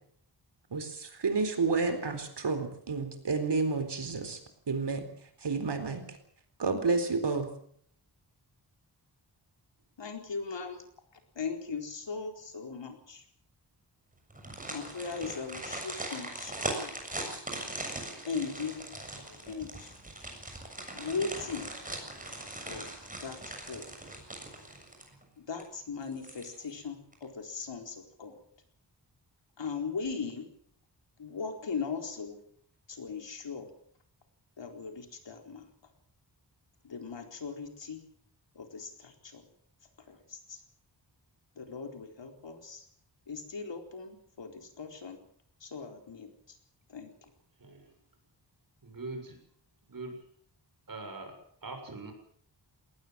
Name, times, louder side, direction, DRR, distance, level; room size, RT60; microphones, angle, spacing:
voice 1, 0.7-4.4 4.7-5.0 5.4-6.0 6.6-7.5, right 4 dB, 70° right, 9 dB, 4.1 m, -30 dB
voice 2, 10.0-10.8 11.4-13.2 14.7-17.0 18.3-18.9 19.3-19.9 20.9-21.7 22.7-22.9 23.2-23.4 23.7-23.8 25.5-28.4 29.6-30.4 31.2-32.4 32.9-33.7 34.6-35.6 36.8-38.0 38.6-39.4 40.1-40.6 41.6-42.8 43.3-45.2 45.6-46.3 46.9-47.1, left 5 dB, 80° left, 4 dB, 4.3 m, -38 dB
sound 1, 14.3-25.2 25.6-25.7 26.1-26.8 27.1-27.2, right 1 dB, 20° right, 7.2 m, -40 dB
voice 3, 48.8-49.4 49.9-50.2 50.9-51.3 51.6-52.1, right 3 dB, 50° right, 5 dB, 7.0 m, -42 dB
21.0 x 18.5 x 7.6 m, 0.64 s
wide cardioid pair, 115°, 43 cm